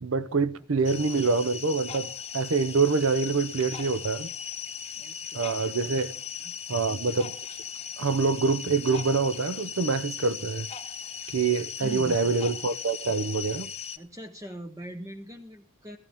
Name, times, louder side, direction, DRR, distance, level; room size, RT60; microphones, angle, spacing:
voice 1, 0.0-4.3 5.3-6.1 6.7-7.3 8.0-10.7 11.3-13.7, right 4 dB, 65° right, 0.6 m, -26 dB
sound 1, 0.8-14.0, left 7 dB, 30° left, 0.9 m, -38 dB
voice 2, 5.0-6.5 11.8-12.3 14.0-16.0, equal, 15° right, 0.7 m, -42 dB
16.0 x 14.5 x 3.5 m
head